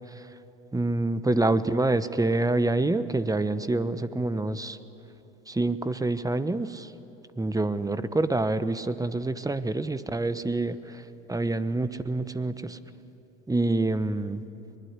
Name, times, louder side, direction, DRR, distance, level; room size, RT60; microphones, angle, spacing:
voice 1, 0.7-4.8 5.5-6.9 7.4-10.8 11.3-12.8 13.5-14.4, right 2 dB, 10° right, 13 dB, 1.0 m, -26 dB
23.5 x 20.0 x 9.7 m, 3.0 s
hypercardioid pair, 80°, 32 cm